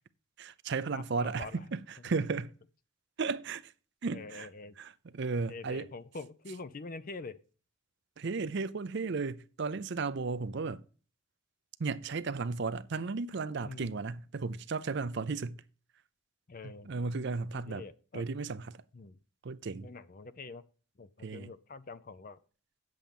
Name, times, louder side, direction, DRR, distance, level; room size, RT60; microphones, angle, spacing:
voice 1, 0.4-2.5 3.2-3.7 4.0-4.5 4.8-5.9 8.2-10.8 11.8-15.6 16.6-17.8 18.1-18.8 19.4-19.9 21.2-21.5, right 4 dB, 55° right, 0.5 m, -34 dB
voice 2, 0.9-1.6 4.1-4.8 5.5-7.4 13.6-13.9 16.5-16.9 17.5-18.2 18.9-19.2 19.8-20.6 21.0-22.4, left 3 dB, 40° left, 0.5 m, -45 dB
8.5 x 7.7 x 5.3 m
head